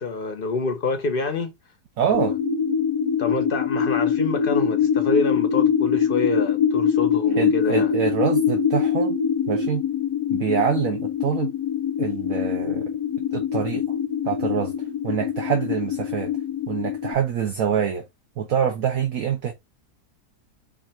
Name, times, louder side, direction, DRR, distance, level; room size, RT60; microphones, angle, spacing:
voice 1, 0.0-1.5 2.1-2.3 3.2-7.9, left 3 dB, 45° left, 0.8 m, -27 dB
voice 2, 2.0-2.3 7.3-9.2 9.5-9.8 10.3-11.5 12.0-12.9 13.3-13.8 14.2-14.7 15.0-16.3 16.7-18.0 18.4-19.5, right 8 dB, 60° right, 1.2 m, -25 dB
sound 1, 2.1-17.1, left 7 dB, 65° left, 1.1 m, -23 dB
4.7 x 2.6 x 4.2 m
omnidirectional pair, 1.7 m